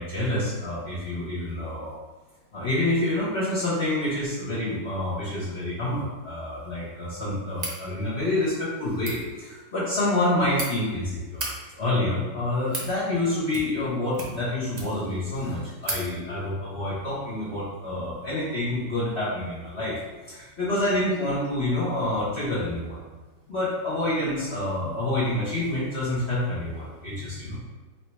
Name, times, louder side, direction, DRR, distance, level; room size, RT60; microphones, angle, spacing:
voice 1, 0.0-2.0 2.5-11.4 11.7-20.0 20.3-23.0 23.5-27.6, left 1 dB, 45° left, -8 dB, 1.1 m, -27 dB
sound 1, 7.5-7.8 8.9-9.2 10.1-10.7 11.2-11.5 12.3-12.9 13.5-13.9 14.1-15.1 15.4-15.5 15.8-16.0, right 2 dB, 85° right, 0.3 m, -34 dB
3.3 x 2.9 x 4.5 m, 1.2 s
omnidirectional pair, 1.9 m